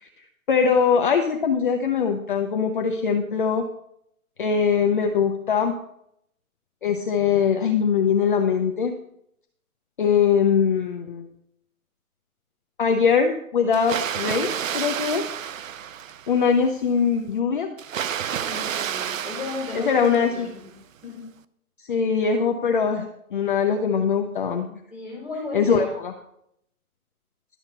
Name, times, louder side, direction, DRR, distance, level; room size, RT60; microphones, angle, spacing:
voice 1, 0.5-3.6 4.4-5.8 6.8-8.9 10.0-11.3 12.8-15.3 16.3-17.7 19.7-20.5 21.8-24.8 25.5-26.1, left 6 dB, 35° left, 4 dB, 0.7 m, -22 dB
Water, 13.7-16.5 17.8-20.6, right 9 dB, 60° right, 0.7 m, -30 dB
voice 2, 18.3-20.7 21.0-21.2 24.9-26.0, left 3 dB, 5° right, -7 dB, 4.5 m, -35 dB
12.0 x 7.0 x 5.4 m, 0.73 s
hypercardioid pair, 170°, 44 cm